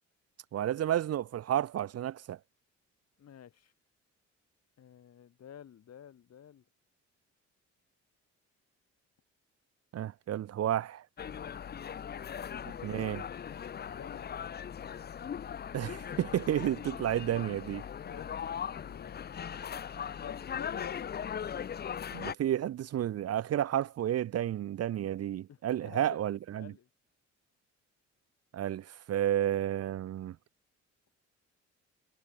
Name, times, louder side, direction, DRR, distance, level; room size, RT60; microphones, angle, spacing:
voice 1, 0.5-2.4 9.9-11.0 12.8-13.3 15.7-17.8 22.1-26.7 28.5-30.4, right 11 dB, 55° right, 0.7 m, -31 dB
voice 2, 3.2-3.7 4.8-6.6 13.7-14.3 17.6-21.0 25.5-26.2 26.5-26.9, left 9 dB, 55° left, 3.0 m, -51 dB
sound 1, 11.2-22.3, left 8 dB, 35° left, 0.6 m, -39 dB
cardioid pair, 90°, 30 cm